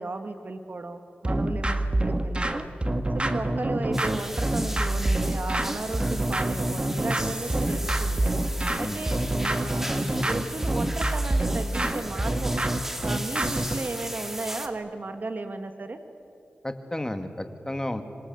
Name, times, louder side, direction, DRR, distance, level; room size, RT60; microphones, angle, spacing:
voice 1, 0.0-2.7 3.1-8.3 8.8-12.6 13.0-16.0, right 3 dB, 55° right, 7 dB, 2.0 m, -35 dB
sound 1, 1.2-13.9, right 1 dB, 30° right, 1.8 m, -26 dB
sound 2, 3.9-14.7, equal, 10° right, 2.5 m, -37 dB
voice 2, 16.6-18.0, left 1 dB, 15° left, 7 dB, 2.6 m, -32 dB
27.0 x 25.5 x 8.1 m, 2.6 s
cardioid pair, 50°, 4 cm